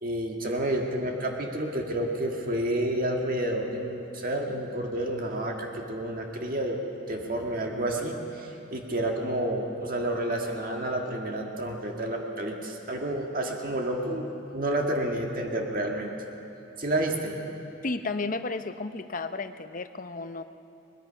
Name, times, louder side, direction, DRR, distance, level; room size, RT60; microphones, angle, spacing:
voice 1, 0.0-6.8 7.1-16.1 16.8-17.4, right 1 dB, 45° right, 1 dB, 1.8 m, -30 dB
voice 2, 17.8-20.4, left 3 dB, 40° left, 10 dB, 0.7 m, -33 dB
22.0 x 20.0 x 5.8 m, 2.8 s
head